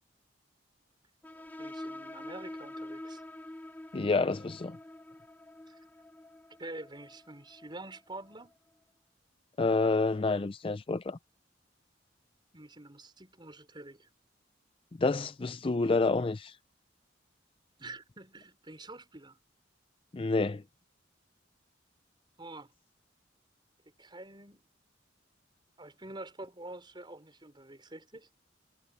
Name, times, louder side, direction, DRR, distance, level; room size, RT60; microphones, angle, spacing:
sound 1, 1.2-8.5, left 1 dB, 10° left, 1.0 m, -46 dB
voice 1, 1.6-3.2 5.7-5.8 6.6-8.6 12.5-14.1 17.8-19.4 22.4-22.7 24.0-24.6 25.8-28.3, right 2 dB, 25° right, 5.6 m, -47 dB
voice 2, 3.9-4.8 9.6-11.2 15.0-16.5 20.1-20.6, left 3 dB, 30° left, 0.4 m, -28 dB
head